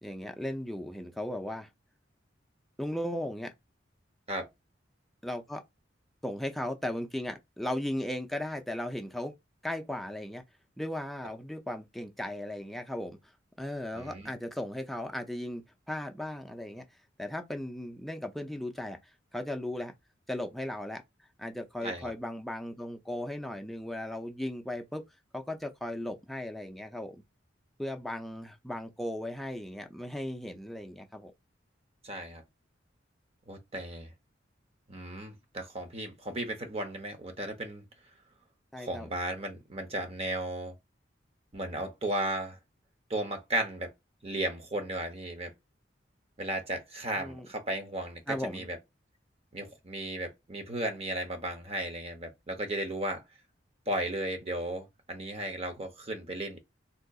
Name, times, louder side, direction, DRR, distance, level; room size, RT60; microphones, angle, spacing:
voice 1, 0.0-1.7 2.8-3.5 5.2-5.6 6.2-9.3 9.6-10.4 10.8-13.2 13.6-16.8 17.2-19.0 19.3-19.9 20.3-21.0 21.4-25.0 25.3-27.2 27.8-31.3 38.7-39.1 47.2-47.5 48.3-48.7, left 1 dB, ahead, 0.4 m, -36 dB
voice 2, 13.9-14.3 21.8-22.1 32.0-32.4 33.5-34.1 34.9-37.8 38.8-40.7 41.5-42.6 43.1-43.9 44.2-45.5 46.4-48.8 49.5-53.2 53.9-56.6, right 1 dB, 35° right, 0.8 m, -35 dB
3.8 x 2.7 x 2.3 m
head